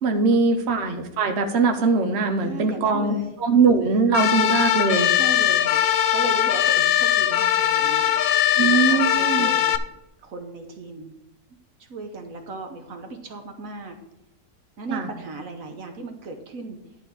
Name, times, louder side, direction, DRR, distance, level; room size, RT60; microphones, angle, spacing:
voice 1, 0.0-5.1 8.6-9.5 14.9-15.1, right 4 dB, 50° right, 5 dB, 1.2 m, -21 dB
voice 2, 2.4-3.4 3.9-4.0 5.1-5.8 6.1-8.1 8.6-9.8 10.2-11.1 11.8-14.0 14.8-16.8, right 3 dB, 65° right, 5 dB, 1.4 m, -36 dB
sound 1, 4.1-9.8, left 11 dB, 65° left, 1.0 m, -20 dB
11.0 x 4.1 x 7.1 m, 0.88 s
omnidirectional pair, 1.6 m